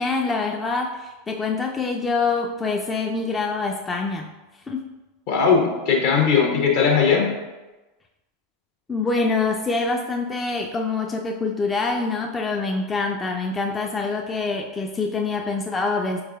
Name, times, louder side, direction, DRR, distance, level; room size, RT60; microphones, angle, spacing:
voice 1, 0.0-4.3 4.7-4.8 8.9-16.2, left 3 dB, 20° left, 2 dB, 0.3 m, -25 dB
voice 2, 5.3-7.3, left 6 dB, 60° left, 0 dB, 1.0 m, -19 dB
4.7 x 4.1 x 2.3 m, 1.1 s
hypercardioid pair, 85°, 0 cm